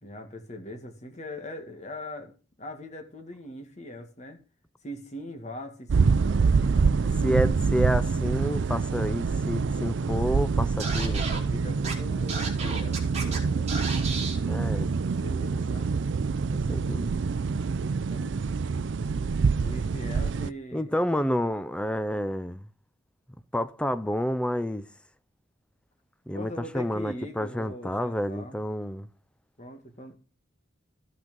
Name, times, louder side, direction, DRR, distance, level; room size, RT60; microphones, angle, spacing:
voice 1, 0.0-4.4 4.8-7.5 10.8-13.9 15.1-15.9 17.9-18.3 18.7-18.9 19.6-20.9 26.3-28.6 29.6-30.1, left 1 dB, 35° left, 1.8 m, -41 dB
sound 1, 5.9-20.5, right 5 dB, 65° right, 0.4 m, -26 dB
voice 2, 7.2-11.3 14.4-14.9 16.7-17.1 20.7-22.6 23.5-24.9 26.3-29.1, equal, 5° left, 0.5 m, -29 dB
Scratching (performance technique), 10.8-11.4 11.8-11.9 12.3-13.4 13.7-14.4, right 4 dB, 35° right, 2.8 m, -33 dB
13.5 x 6.2 x 5.3 m
head